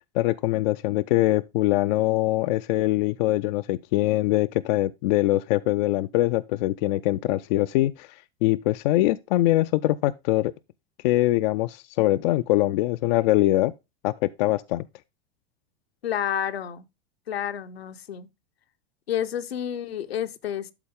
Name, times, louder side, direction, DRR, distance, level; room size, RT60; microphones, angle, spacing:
voice 1, 0.1-8.1 8.4-10.5 11.0-13.7 14.0-14.8, left 17 dB, 45° left, 0.4 m, -23 dB
voice 2, 16.0-16.8 17.3-18.3 19.1-20.7, left 9 dB, 75° left, 0.8 m, -30 dB
12.0 x 4.2 x 3.5 m
figure-of-eight pair, 85°, 31 cm